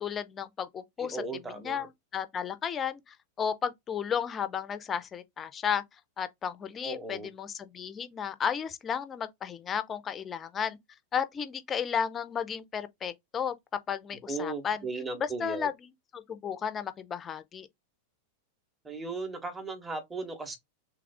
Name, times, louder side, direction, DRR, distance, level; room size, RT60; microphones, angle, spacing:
voice 1, 0.0-1.2 1.5-5.8 6.2-10.8 11.1-13.5 13.9-14.9 15.2-17.7, left 7 dB, 25° left, 0.5 m, -33 dB
voice 2, 1.0-1.9 6.8-7.3 14.3-15.7 18.8-20.6, right 3 dB, 10° right, 0.9 m, -36 dB
3.4 x 2.3 x 3.4 m
figure-of-eight pair, 90°, 0 cm